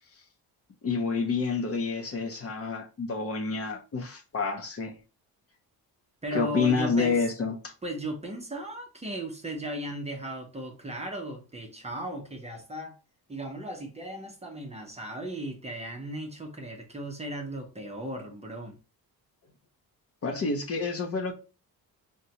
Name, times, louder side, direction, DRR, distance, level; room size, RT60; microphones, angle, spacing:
voice 1, 0.8-4.9 6.3-7.7 20.2-21.3, left 4 dB, 40° left, 0.6 m, -28 dB
voice 2, 6.2-7.3 7.8-13.0 13.3-18.8, right 1 dB, 15° right, 0.6 m, -36 dB
5.0 x 2.2 x 2.8 m
cardioid pair, 140°, 38 cm